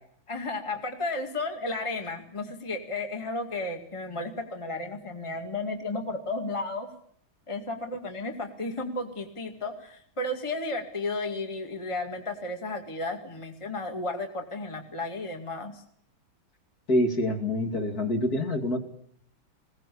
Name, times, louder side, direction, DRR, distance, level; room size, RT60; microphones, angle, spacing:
voice 1, 0.3-6.9 7.5-15.8, left 2 dB, 15° left, 3 dB, 2.1 m, -33 dB
voice 2, 16.9-18.8, left 1 dB, 45° left, 3 dB, 3.1 m, -26 dB
21.0 x 18.0 x 8.5 m, 0.65 s
omnidirectional pair, 2.4 m